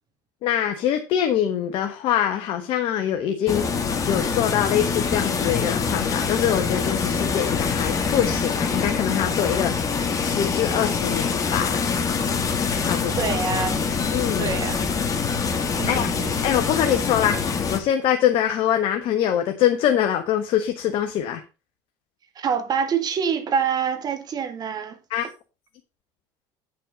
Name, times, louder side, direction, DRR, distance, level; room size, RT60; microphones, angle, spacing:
voice 1, 0.4-3.6 4.1-9.7 10.2-11.7 12.8-13.3 14.1-14.6 15.9-16.1 16.4-21.4 25.1-25.2, left 10 dB, 60° left, 1.3 m, -24 dB
sound 1, 3.5-17.8, left 5 dB, 35° left, 2.1 m, -25 dB
voice 2, 13.2-13.9 14.4-14.9 15.8-16.4 22.4-25.0, right 6 dB, 40° right, 1.8 m, -26 dB
9.1 x 5.6 x 5.1 m
supercardioid pair, 90°, 10 cm